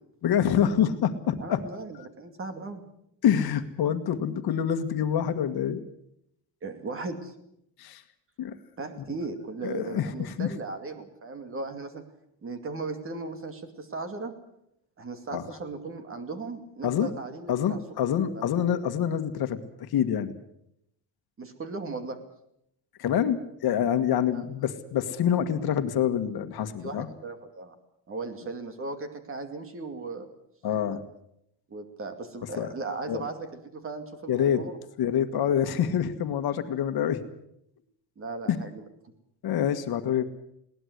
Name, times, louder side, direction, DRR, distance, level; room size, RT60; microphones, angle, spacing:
voice 1, 0.2-1.6 3.2-5.8 7.8-8.0 8.4-8.6 9.6-10.5 15.3-15.4 16.8-17.1 17.5-20.4 23.0-27.1 30.6-31.0 32.6-32.7 33.1-33.2 34.3-34.7 35.0-37.2 38.4-38.6 39.4-40.2, left 9 dB, 55° left, 9 dB, 1.7 m, -26 dB
voice 2, 1.4-2.8 6.6-7.3 8.8-12.0 12.4-14.3 15.0-17.8 18.3-18.5 21.4-22.2 24.3-24.4 26.8-27.7 28.1-30.3 31.7-34.8 38.2-38.8, right 3 dB, 30° right, 8 dB, 2.5 m, -37 dB
21.5 x 18.5 x 8.0 m, 0.76 s
cardioid pair, 175°, 43 cm